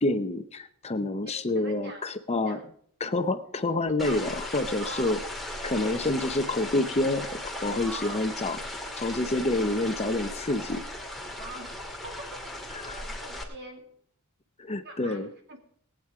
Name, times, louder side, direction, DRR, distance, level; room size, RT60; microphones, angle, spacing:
voice 1, 0.0-2.6 3.0-5.2 5.6-8.6 9.0-10.8 12.7-13.0 14.6-15.3, left 2 dB, 30° left, 9 dB, 0.7 m, -28 dB
voice 2, 1.2-2.1 2.5-2.6 4.0-5.3 7.8-8.3 11.3-12.6 13.0-13.9 14.8-15.6, right 2 dB, 55° right, 3 dB, 2.5 m, -44 dB
sound 1, 4.0-13.4, left 1 dB, ahead, 2.3 m, -37 dB
19.0 x 9.1 x 4.8 m, 0.64 s
head